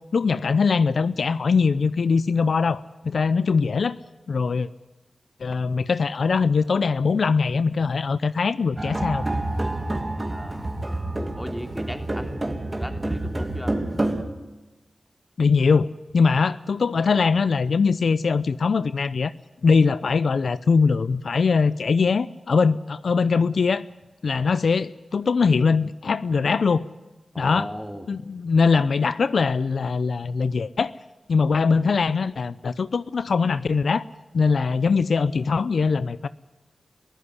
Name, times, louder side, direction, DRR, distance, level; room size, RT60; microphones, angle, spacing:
voice 1, 0.1-4.0 4.3-4.7 5.4-9.2 15.4-15.9 16.1-19.3 19.6-23.9 24.2-26.8 27.4-27.7 28.1-30.9 31.3-34.1 34.3-36.3, left 5 dB, 80° left, 16 dB, 0.6 m, -21 dB
sound 1, 8.8-14.2, right 1 dB, 30° right, 2.8 m, -28 dB
voice 2, 10.3-10.7 11.4-13.8 27.3-28.1, equal, 5° left, 6 dB, 3.3 m, -36 dB
23.0 x 15.5 x 9.6 m, 1.1 s
cardioid pair, 60°, 0 cm